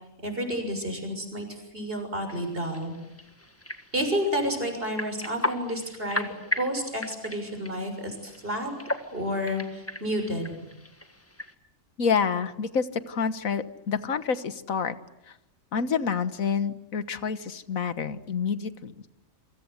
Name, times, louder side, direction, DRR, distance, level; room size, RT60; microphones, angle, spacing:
voice 1, 0.2-1.5 1.7-2.9 3.9-8.7 9.1-10.5, equal, 45° right, 5 dB, 6.9 m, -30 dB
sound 1, 2.3-11.5, left 1 dB, 10° left, 1.6 m, -37 dB
voice 2, 12.0-15.0 15.3-15.4 15.7-18.9, left 6 dB, 80° left, 12 dB, 1.8 m, -28 dB
28.5 x 25.0 x 8.1 m, 0.88 s
omnidirectional pair, 1.4 m